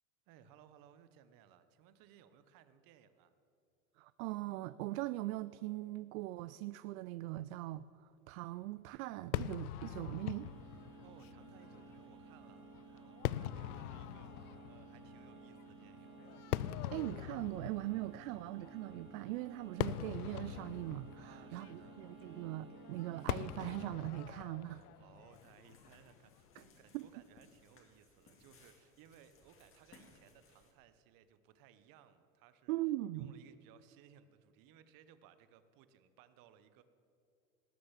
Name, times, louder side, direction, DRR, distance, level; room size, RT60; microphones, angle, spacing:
voice 1, 0.3-3.3 11.0-16.2 21.2-22.0 24.8-32.7 33.1-36.8, right 9 dB, 50° right, 1.1 m, -63 dB
voice 2, 4.0-10.5 16.9-24.8 26.6-26.7 26.9-27.1 32.7-33.4, right 17 dB, 70° right, 0.5 m, -41 dB
Fireworks, 9.3-26.7, left 13 dB, 90° left, 0.5 m, -44 dB
sound 1, 10.2-23.8, right 4 dB, 30° right, 2.4 m, -55 dB
sound 2, 25.3-30.7, left 4 dB, 30° left, 2.4 m, -65 dB
19.0 x 6.6 x 7.3 m
hypercardioid pair, 110°, 44 cm